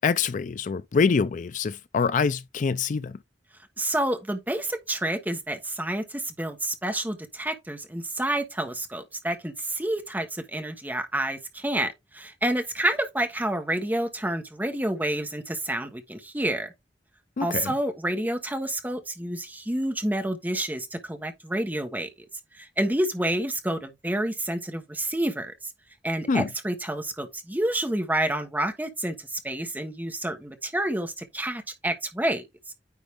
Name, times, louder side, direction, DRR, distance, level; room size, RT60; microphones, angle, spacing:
voice 1, 0.0-3.2 17.4-17.7 26.3-26.5, left 5 dB, 45° left, 0.4 m, -25 dB
voice 2, 3.8-16.7 17.4-22.1 22.5-25.5 26.0-32.4, right 1 dB, 10° right, 1.2 m, -29 dB
9.6 x 3.9 x 3.5 m
head